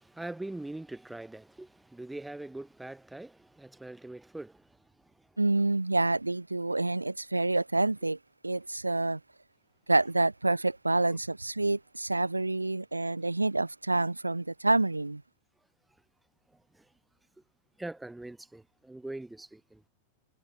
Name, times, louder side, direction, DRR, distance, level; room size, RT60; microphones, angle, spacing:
voice 1, 0.0-4.8 5.2-5.3 16.7-16.9 17.8-19.8, right 2 dB, 5° right, 3.2 m, -42 dB
voice 2, 5.4-8.2 8.4-9.2 9.9-15.2, right 2 dB, 85° right, 0.5 m, -27 dB
figure-of-eight pair, 90°, 0 cm